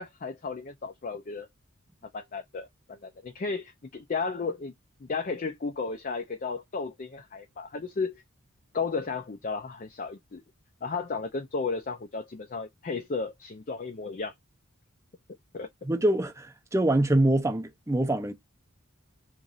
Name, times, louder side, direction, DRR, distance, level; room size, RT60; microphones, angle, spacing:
voice 1, 0.0-1.5 2.1-4.7 5.0-8.2 8.7-10.4 10.8-14.3 15.5-15.7, left 4 dB, 35° left, 0.4 m, -34 dB
voice 2, 15.8-18.3, right 1 dB, 15° right, 0.5 m, -25 dB
3.0 x 2.5 x 3.9 m
head